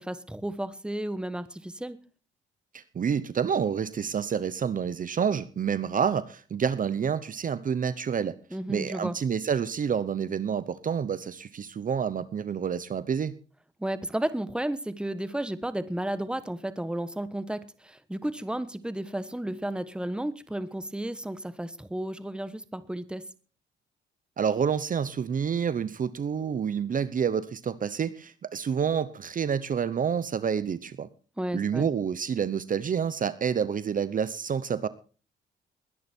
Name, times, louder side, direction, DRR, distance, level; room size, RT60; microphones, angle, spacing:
voice 1, 0.0-2.0 8.5-9.2 13.8-23.2 31.4-31.9, right 1 dB, 5° right, 1.3 m, -33 dB
voice 2, 2.7-8.4 8.7-13.4 24.4-31.1 31.5-34.9, right 7 dB, 40° right, 0.9 m, -28 dB
20.5 x 10.0 x 4.5 m
cardioid pair, 90°, 20 cm